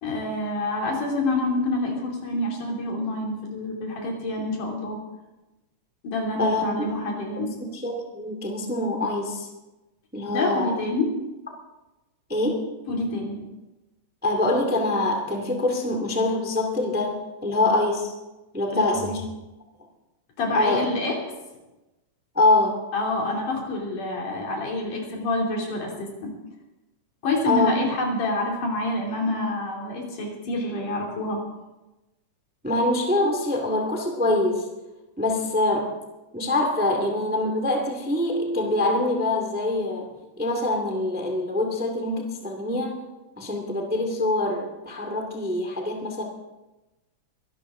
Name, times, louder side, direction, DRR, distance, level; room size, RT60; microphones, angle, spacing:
voice 1, 0.0-5.0 6.0-7.6 10.3-11.1 12.9-13.4 18.7-18.9 20.4-21.2 22.9-26.3 27.2-31.4, left 2 dB, 85° left, -1 dB, 4.5 m, -27 dB
voice 2, 6.4-6.9 7.6-9.5 10.1-10.7 12.3-12.7 14.2-18.1 18.5-19.2 20.5-20.9 22.3-22.8 27.4-27.8 32.6-34.6 35.2-35.9 36.3-40.1 40.4-43.0 43.4-46.2, left 2 dB, 5° right, 2 dB, 1.3 m, -24 dB
23.0 x 12.5 x 3.7 m, 1.1 s
omnidirectional pair, 3.5 m